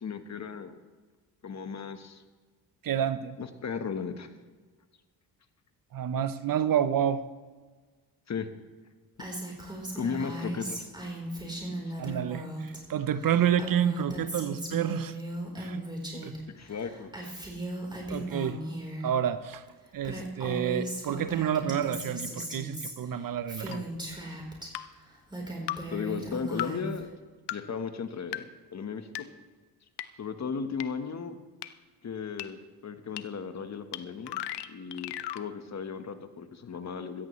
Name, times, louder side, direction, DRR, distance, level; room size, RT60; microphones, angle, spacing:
voice 1, 0.0-0.7 1.4-2.2 3.4-4.3 8.3-8.5 9.9-10.9 16.1-17.3 25.9-27.1 27.5-29.3 30.2-31.4 32.0-37.3, left 6 dB, 40° left, 8 dB, 1.3 m, -36 dB
voice 2, 2.8-3.4 5.9-7.2 12.0-15.2 15.6-15.8 16.2-16.4 18.1-18.6 19.0-19.6 19.9-23.8, right 9 dB, 55° right, 13 dB, 0.8 m, -29 dB
Female speech woman speaking, 9.2-12.8 13.1-16.4 16.7-19.1 19.7-19.8 20.0-24.7 25.1-27.0, right 1 dB, 10° right, 4.1 m, -37 dB
sound 1, 23.7-23.8 24.7-24.9 25.7-25.8 26.6-26.7 27.5-27.6 28.3-28.4 29.2-29.3 30.0-30.1 30.8-30.9 31.6-31.7 32.4-32.5 33.2-33.3 33.9-34.0 34.3-35.4, left 13 dB, 80° left, 0.7 m, -34 dB
16.0 x 14.0 x 3.2 m, 1.4 s
cardioid pair, 80°, 40 cm